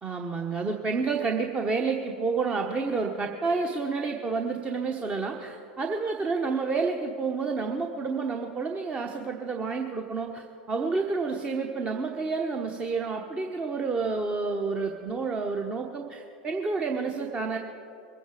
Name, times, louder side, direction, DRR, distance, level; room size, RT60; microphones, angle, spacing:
voice 1, 0.0-17.6, right 4 dB, 25° right, 2 dB, 1.1 m, -29 dB
23.0 x 9.2 x 4.9 m, 2.6 s
figure-of-eight pair, 90°, 5 cm